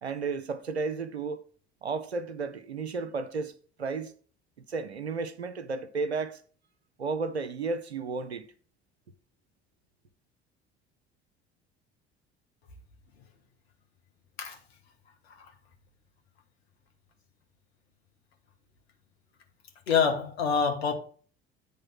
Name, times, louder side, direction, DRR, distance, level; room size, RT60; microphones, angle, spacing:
voice 1, 0.0-1.4 1.8-4.1 4.7-6.4 7.0-8.5, right 4 dB, 90° right, 0.6 m, -33 dB
voice 2, 19.9-20.9, left 6 dB, 75° left, 1.2 m, -26 dB
8.9 x 3.5 x 5.7 m
figure-of-eight pair, 60°, 32 cm